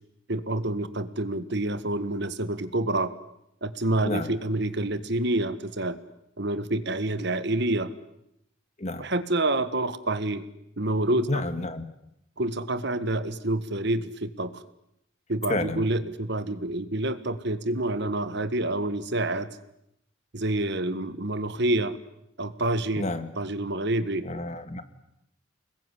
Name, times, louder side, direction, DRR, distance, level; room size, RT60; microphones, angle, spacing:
voice 1, 0.3-3.1 3.6-6.0 6.4-7.9 9.0-10.4 10.8-11.4 12.4-14.6 15.3-19.5 20.3-21.9 22.4-23.1 23.4-24.2, right 2 dB, 55° right, 12 dB, 1.7 m, -27 dB
voice 2, 11.3-11.8 15.5-15.9 23.0-23.3 24.2-24.8, left 2 dB, 35° left, 9 dB, 2.0 m, -30 dB
26.0 x 21.5 x 10.0 m, 0.81 s
head